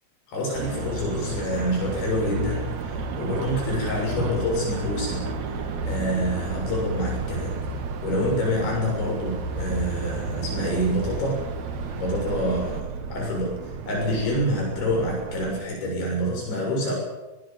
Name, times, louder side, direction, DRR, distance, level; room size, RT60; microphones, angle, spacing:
voice 1, 0.3-5.5 5.8-7.6 8.0-11.5 12.0-13.5 13.9-16.9, equal, 70° left, -1 dB, 9.1 m, -27 dB
sound 1, 0.5-12.8, right 2 dB, 50° right, 2.6 m, -32 dB
Motor vehicle (road) / Siren, 1.1-15.6, right 6 dB, 85° right, 1.5 m, -37 dB
23.0 x 21.0 x 7.5 m, 1.1 s
omnidirectional pair, 5.6 m